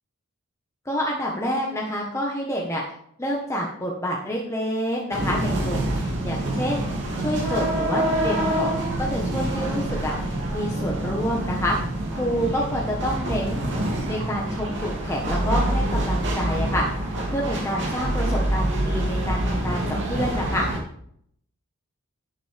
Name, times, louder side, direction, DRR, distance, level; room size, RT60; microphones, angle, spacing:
voice 1, 0.8-2.8 3.2-6.9 7.2-11.8 12.1-13.6 14.1-16.8 17.3-20.7, equal, 15° left, -2 dB, 1.4 m, -28 dB
sound 1, 5.1-20.8, right 1 dB, 55° right, 2.7 m, -26 dB
11.5 x 9.7 x 3.5 m, 0.67 s
head